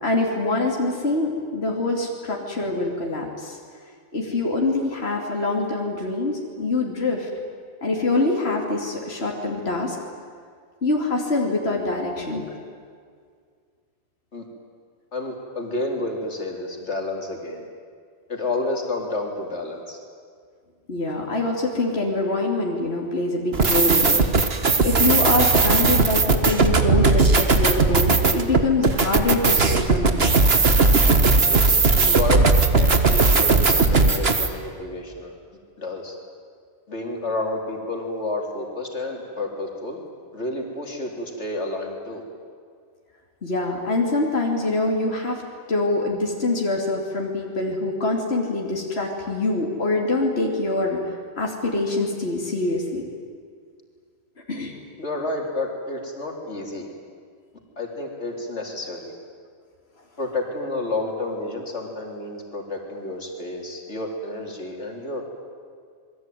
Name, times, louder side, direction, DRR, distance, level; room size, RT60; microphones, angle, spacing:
voice 1, 0.0-3.6 4.1-7.3 7.8-10.0 10.8-12.4 20.9-24.6 24.8-30.3 43.4-45.4 45.7-53.1 54.5-54.7, left 2 dB, 65° left, -1 dB, 3.2 m, -24 dB
voice 2, 15.1-17.7 18.3-20.0 31.4-35.3 35.8-36.2 36.9-40.0 40.3-42.2 55.0-56.9 57.8-59.1 60.2-65.2, left 2 dB, 90° left, 1 dB, 3.8 m, -30 dB
sound 1, 23.5-34.5, right 3 dB, 65° right, 1.9 m, -18 dB
27.5 x 22.0 x 9.3 m, 2.1 s
omnidirectional pair, 1.1 m